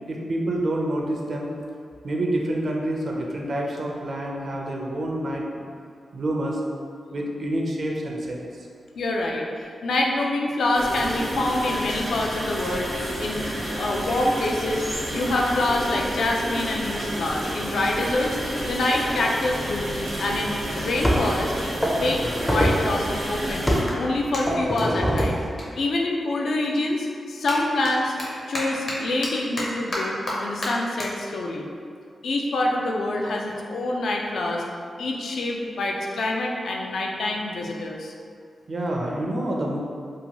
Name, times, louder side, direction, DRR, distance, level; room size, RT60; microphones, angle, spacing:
voice 1, 0.1-1.5 2.0-5.6 6.1-6.6 7.1-8.7 38.7-39.8, right 1 dB, 55° right, -1 dB, 0.4 m, -27 dB
voice 2, 9.0-13.5 13.8-21.5 21.8-22.2 22.5-23.7 23.9-25.4 25.8-28.1 28.5-31.7 32.2-34.6 35.0-38.1, left 2 dB, 80° left, -1 dB, 0.3 m, -26 dB
sound 1, 10.7-23.8, equal, 80° right, 0.9 m, -30 dB
sound 2, 20.3-20.4 21.0-21.4 21.8-22.9 23.7-24.0 24.5-25.5, equal, 10° left, 0.4 m, -23 dB
Clapping, 23.8-26.6 26.9-33.5, left 1 dB, 55° left, 0.7 m, -35 dB
2.8 x 2.2 x 2.8 m, 2.3 s
wide cardioid pair, 90°, 0 cm